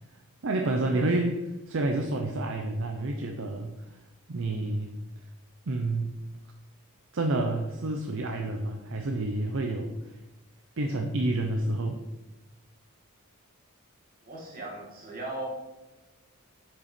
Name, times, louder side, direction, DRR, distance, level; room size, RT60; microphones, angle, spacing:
voice 1, 0.4-4.0 4.3-4.9 5.7-6.2 7.1-10.2 10.8-12.0, right 2 dB, 60° right, 3 dB, 0.6 m, -29 dB
voice 2, 14.2-15.5, right 2 dB, 40° right, -2 dB, 2.0 m, -38 dB
6.9 x 5.4 x 5.1 m, 1.1 s
head